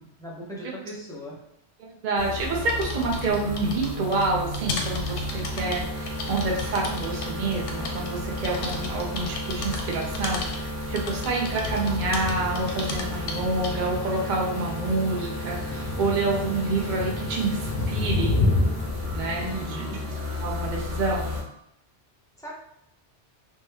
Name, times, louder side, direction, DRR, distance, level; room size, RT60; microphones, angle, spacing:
voice 1, 0.0-1.4 19.3-20.0 22.4-22.5, right 1 dB, 5° left, -6 dB, 0.4 m, -38 dB
voice 2, 2.0-18.4 19.1-19.9 20.4-21.3, right 3 dB, 50° right, -2 dB, 0.7 m, -28 dB
sound 1, 2.2-21.4, equal, 85° right, 1.3 m, -33 dB
sound 2, 2.4-14.0, left 3 dB, 90° left, 0.9 m, -35 dB
sound 3, 11.6-19.6, left 2 dB, 60° left, 0.7 m, -30 dB
3.0 x 2.1 x 3.4 m, 0.78 s
omnidirectional pair, 1.2 m